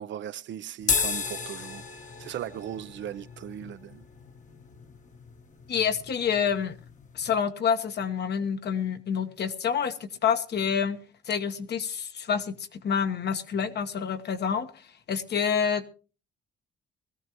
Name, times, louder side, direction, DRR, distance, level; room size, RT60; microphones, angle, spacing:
voice 1, 0.0-1.8 2.2-4.0, right 10 dB, 70° right, 0.8 m, -38 dB
sound 1, 0.8-7.4, left 5 dB, 40° left, 1.3 m, -34 dB
voice 2, 5.7-6.8 7.1-11.0 11.3-14.7 15.1-15.9, left 7 dB, 60° left, 1.3 m, -28 dB
20.0 x 14.0 x 3.0 m
cardioid pair, 90°, 20 cm